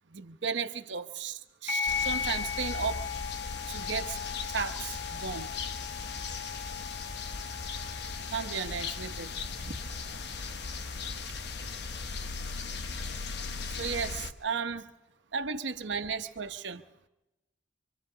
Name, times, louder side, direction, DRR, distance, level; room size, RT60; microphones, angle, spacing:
voice 1, 0.1-3.0 3.7-4.2 4.5-5.5 8.3-9.4 9.6-9.8 13.7-14.9 15.3-16.8, right 5 dB, 85° right, 1.0 m, -35 dB
sound 1, 1.7-10.7, left 6 dB, 40° left, 7.0 m, -38 dB
sound 2, 1.9-14.3, left 4 dB, 65° left, 1.0 m, -38 dB
26.5 x 25.5 x 3.9 m
head